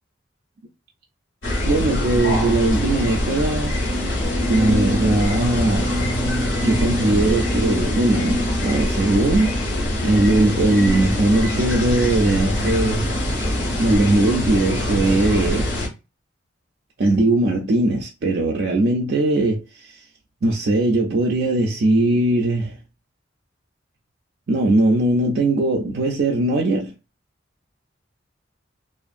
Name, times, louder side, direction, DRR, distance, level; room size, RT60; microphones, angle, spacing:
sound 1, 1.4-15.9, left 1 dB, 75° left, 1.0 m, -23 dB
voice 1, 1.6-3.8 4.5-5.9 6.6-9.5 10.0-13.1 13.8-15.7 17.0-20.0 20.4-22.8 24.5-26.9, right 2 dB, 55° right, 0.4 m, -20 dB
2.5 x 2.4 x 2.5 m
head